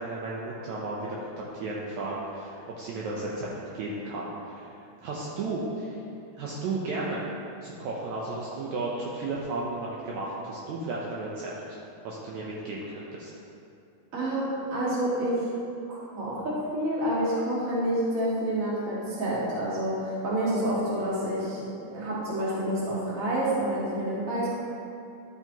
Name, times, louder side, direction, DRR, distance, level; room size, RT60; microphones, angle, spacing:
voice 1, 0.0-3.5 3.7-4.7 5.0-6.0 6.4-7.2 7.6-11.8 12.0-13.3, right 2 dB, 85° right, -5 dB, 1.6 m, -34 dB
voice 2, 14.1-15.4 15.9-21.6 21.9-24.6, right 1 dB, 30° right, -7 dB, 1.6 m, -28 dB
11.5 x 7.4 x 2.9 m, 2.6 s
omnidirectional pair, 4.4 m